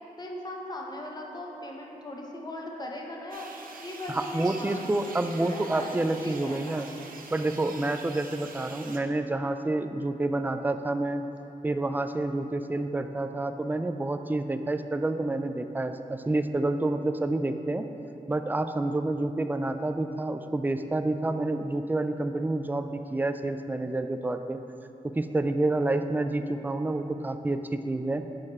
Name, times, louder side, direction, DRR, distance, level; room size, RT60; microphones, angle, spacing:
voice 1, 0.2-3.5 3.8-6.8, left 1 dB, 25° left, -1 dB, 1.0 m, -38 dB
sound 1, 3.3-9.0, right 4 dB, 75° right, 0.6 m, -45 dB
voice 2, 4.1-6.9 7.3-11.2 11.6-17.9 18.3-24.6 25.0-28.2, right 2 dB, 10° right, 8 dB, 0.3 m, -28 dB
6.5 x 4.8 x 4.3 m, 2.9 s
cardioid pair, 65°, 15 cm